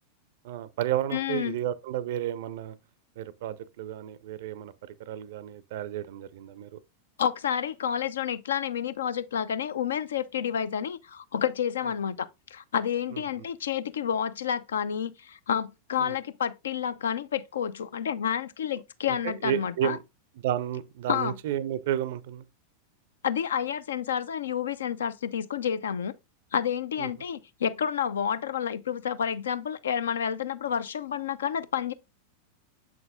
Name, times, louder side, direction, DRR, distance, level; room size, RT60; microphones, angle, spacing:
voice 1, 0.4-2.8 3.2-6.8 13.1-13.2 16.0-16.2 19.1-20.0 20.4-22.4 27.0-27.1, right 11 dB, 55° right, 0.4 m, -32 dB
voice 2, 1.1-1.6 7.2-20.0 21.1-21.4 23.2-26.1 26.5-31.9, left 8 dB, 65° left, 0.5 m, -29 dB
7.2 x 6.0 x 2.4 m
figure-of-eight pair, 90°, 0 cm